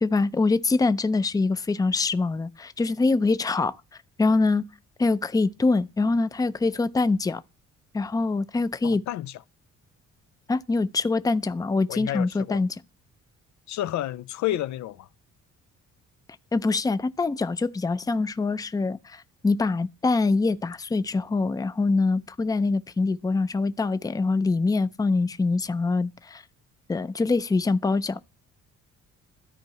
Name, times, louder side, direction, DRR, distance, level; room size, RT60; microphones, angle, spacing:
voice 1, 0.0-3.8 4.2-4.7 5.0-7.4 7.9-9.0 10.5-12.8 16.5-26.4 26.9-28.2, left 3 dB, 10° left, 0.5 m, -24 dB
voice 2, 8.8-9.4 11.9-12.6 13.7-15.1, left 13 dB, 70° left, 0.4 m, -30 dB
13.5 x 4.5 x 2.9 m
cardioid pair, 90°, 30 cm